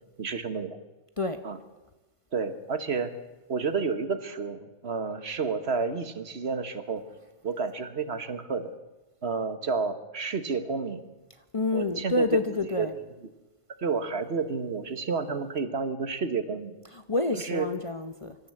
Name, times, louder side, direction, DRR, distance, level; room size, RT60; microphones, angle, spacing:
voice 1, 0.2-0.8 1.4-1.6 2.3-3.1 3.5-7.0 7.4-8.7 9.2-11.0 11.7-12.3 12.8-12.9 13.8-16.7 17.3-17.7, right 5 dB, 55° right, 11 dB, 1.5 m, -30 dB
voice 2, 11.5-12.9 16.8-18.4, left 3 dB, 30° left, 8 dB, 0.8 m, -28 dB
25.0 x 13.5 x 7.7 m, 1.1 s
omnidirectional pair, 1.3 m